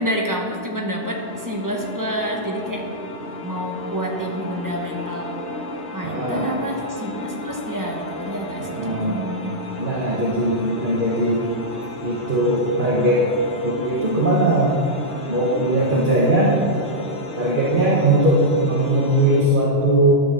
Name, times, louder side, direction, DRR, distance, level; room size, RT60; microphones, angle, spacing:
voice 1, 0.0-2.9 3.4-5.4 5.9-9.6, equal, 20° right, 0 dB, 1.1 m, -28 dB
sound 1, 1.0-19.4, left 1 dB, 80° left, 1.2 m, -33 dB
voice 2, 6.0-6.5 8.6-9.2 9.8-11.5 12.0-13.2 13.6-14.8 15.3-16.6 17.4-20.2, right 1 dB, 50° right, -6 dB, 1.5 m, -19 dB
12.0 x 4.1 x 6.7 m, 2.4 s
omnidirectional pair, 1.1 m